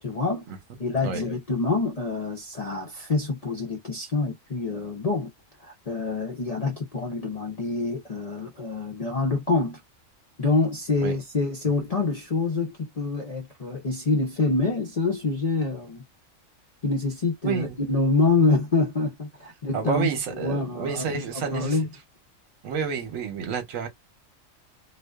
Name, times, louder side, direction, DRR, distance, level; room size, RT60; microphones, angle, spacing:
voice 1, 0.0-0.4 0.8-5.3 5.6-9.8 10.4-16.0 16.8-20.1 20.4-21.9, left 3 dB, 55° left, 0.4 m, -26 dB
voice 2, 17.4-17.8 19.7-21.8 22.6-23.9, right 6 dB, 75° right, 1.2 m, -29 dB
2.4 x 2.3 x 2.2 m
omnidirectional pair, 1.4 m